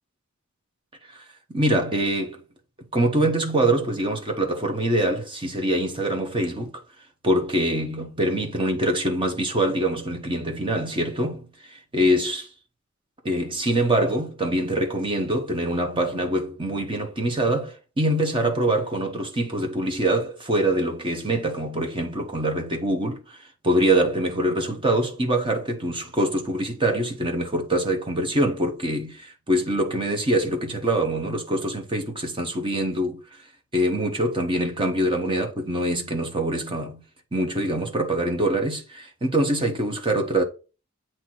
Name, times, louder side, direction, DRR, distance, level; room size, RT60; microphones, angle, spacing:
voice 1, 1.1-2.4 2.9-6.8 7.2-12.5 13.2-33.2 33.7-37.0 37.3-40.4, right 1 dB, 25° right, 1.2 m, -24 dB
8.1 x 3.1 x 4.5 m
head